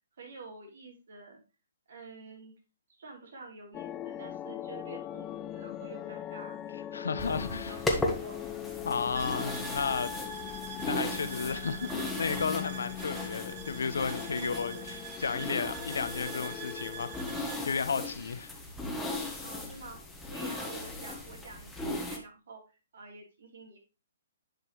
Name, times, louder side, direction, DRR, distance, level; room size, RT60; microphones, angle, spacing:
voice 1, 0.2-1.4 1.9-2.5 3.0-6.6 7.2-8.4 14.3-15.0 19.4-20.0 20.3-21.7 22.1-23.8, right 3 dB, 65° right, 3.2 m, -48 dB
sound 1, 3.7-17.2, left 12 dB, 25° left, 0.3 m, -41 dB
voice 2, 6.9-7.8 8.8-10.1 10.8-18.5, left 5 dB, 80° left, 0.9 m, -33 dB
sound 2, 7.2-22.2, left 2 dB, 5° left, 1.3 m, -37 dB
sound 3, 9.1-17.7, right 9 dB, 45° right, 0.8 m, -45 dB
10.5 x 5.3 x 3.1 m
hypercardioid pair, 140°, 0 cm